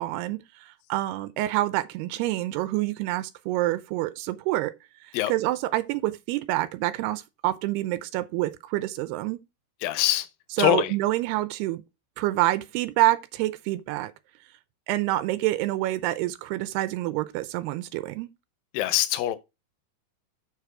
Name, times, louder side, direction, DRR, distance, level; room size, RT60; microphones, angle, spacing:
voice 1, 0.0-4.7 5.0-9.4 10.5-11.8 12.2-14.1 14.9-18.3, right 16 dB, 90° right, 2.7 m, -27 dB
voice 2, 9.8-10.3 10.6-10.9 18.7-19.4, left 14 dB, 75° left, 2.4 m, -23 dB
6.9 x 6.7 x 4.8 m
omnidirectional pair, 4.5 m